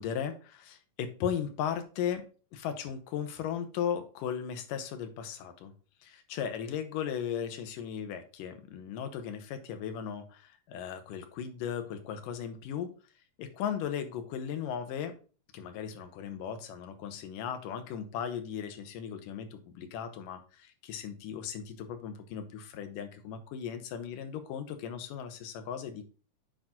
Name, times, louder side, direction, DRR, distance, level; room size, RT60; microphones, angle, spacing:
voice 1, 0.0-2.3 2.5-5.7 6.0-12.9 13.4-15.2 15.5-26.0, left 8 dB, 80° left, 7 dB, 2.5 m, -37 dB
8.5 x 4.4 x 3.7 m, 0.37 s
omnidirectional pair, 3.8 m